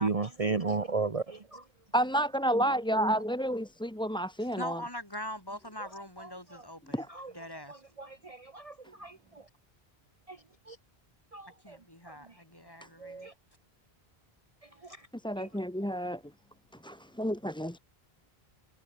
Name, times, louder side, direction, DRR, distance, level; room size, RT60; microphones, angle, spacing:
voice 1, 0.0-1.6 6.2-6.6 7.1-7.3 7.7-9.4 10.3-10.4 10.7-10.8 11.3-11.8 12.1-12.2 13.0-13.3 14.8-15.0 15.4-15.5, right 4 dB, 35° right, 1.1 m, -35 dB
voice 2, 1.9-4.8 7.0-7.1 15.2-16.2 16.8-17.8, right 1 dB, 5° left, 1.0 m, -30 dB
voice 3, 4.6-7.1 7.3-7.8 11.6-13.3, left 1 dB, 20° left, 6.0 m, -42 dB
omnidirectional pair, 1.0 m